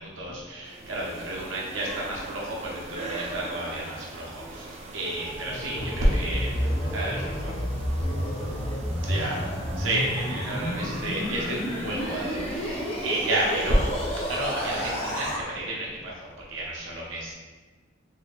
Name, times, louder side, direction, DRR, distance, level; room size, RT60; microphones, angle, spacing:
voice 1, 0.0-6.5 6.9-7.5 9.1-9.4 9.8-17.3, right 1 dB, 85° right, -4 dB, 0.8 m, -30 dB
sound 1, 0.6-15.4, right 2 dB, 35° right, 0.3 m, -41 dB
sound 2, 5.3-15.4, equal, 30° left, 0.5 m, -31 dB
voice 2, 5.5-9.3, left 1 dB, 80° left, -4 dB, 0.5 m, -40 dB
2.7 x 2.5 x 3.2 m, 1.3 s
head